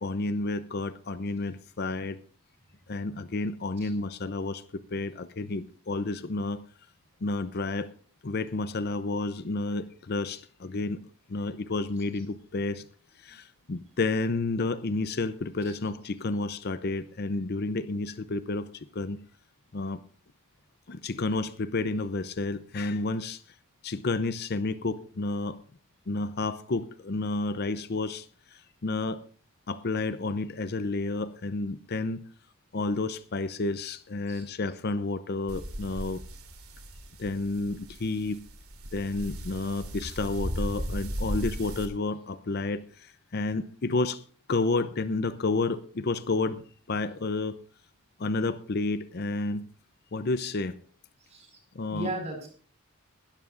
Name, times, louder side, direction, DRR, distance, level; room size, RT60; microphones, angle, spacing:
voice 1, 0.0-2.2 2.9-6.6 7.2-7.9 8.2-11.0 11.3-12.8 13.2-19.2 19.7-20.0 20.9-23.4 23.8-25.6 26.1-29.2 29.7-32.2 32.7-36.2 37.2-38.4 38.9-44.2 44.5-46.6 46.9-47.6 48.2-49.7 50.1-50.8 51.7-52.2, left 3 dB, 45° left, 0.6 m, -30 dB
sound 1, 35.5-41.9, equal, 75° right, 2.9 m, -36 dB
voice 2, 51.9-52.5, right 1 dB, 30° right, 5.0 m, -36 dB
20.5 x 12.5 x 2.5 m
head